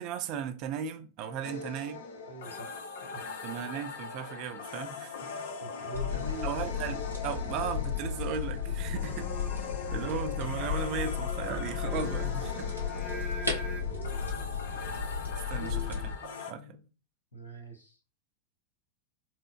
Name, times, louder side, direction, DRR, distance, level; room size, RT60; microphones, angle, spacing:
voice 1, 0.0-2.0 3.4-5.1 5.4-5.5 6.4-9.2 9.9-12.7 13.4-13.6 15.5-16.0 16.5-16.8, right 7 dB, 40° right, 0.5 m, -36 dB
sound 1, 1.4-16.5, left 5 dB, 55° left, 0.5 m, -41 dB
voice 2, 2.2-3.5 5.0-5.2 5.6-6.5 8.7-9.2 10.0-10.2 13.8-14.7 15.6-16.9 17.3-18.0, right 1 dB, 80° left, 0.9 m, -45 dB
sound 2, 5.9-16.1, left 6 dB, 90° right, 0.8 m, -34 dB
Singing, 8.8-13.8, right 1 dB, 25° left, 1.0 m, -45 dB
4.5 x 2.0 x 2.3 m
figure-of-eight pair, 90°, 0 cm